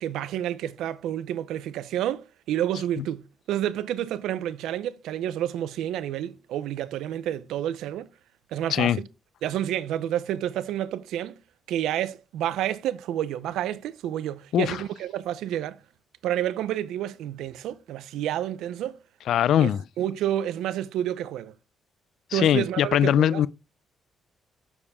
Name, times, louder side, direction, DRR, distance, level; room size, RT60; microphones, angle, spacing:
voice 1, 0.0-3.2 3.5-8.1 8.5-9.1 9.4-11.4 11.7-15.8 16.2-19.0 19.6-19.7 20.0-21.5 22.3-23.4, right 11 dB, 85° right, 0.6 m, -29 dB
voice 2, 19.3-19.8 22.3-23.5, left 10 dB, 75° left, 0.3 m, -21 dB
7.0 x 6.9 x 3.5 m
cardioid pair, 90°, 0 cm